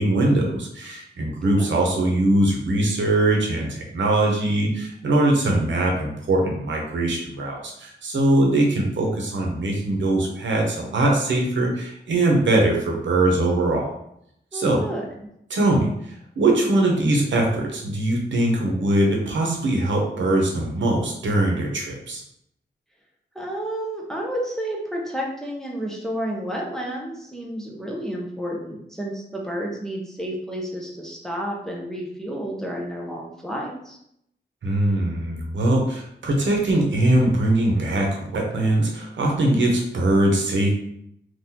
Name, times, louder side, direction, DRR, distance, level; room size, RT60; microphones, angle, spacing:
voice 1, 0.0-13.9 14.5-14.8 15.5-22.2 34.6-40.8, right 1 dB, 85° right, 0 dB, 0.9 m, -21 dB
voice 2, 1.4-1.9 14.5-15.0 23.3-34.0, equal, 5° left, -2 dB, 0.5 m, -31 dB
3.8 x 2.5 x 2.8 m, 0.75 s
wide cardioid pair, 170°, 19 cm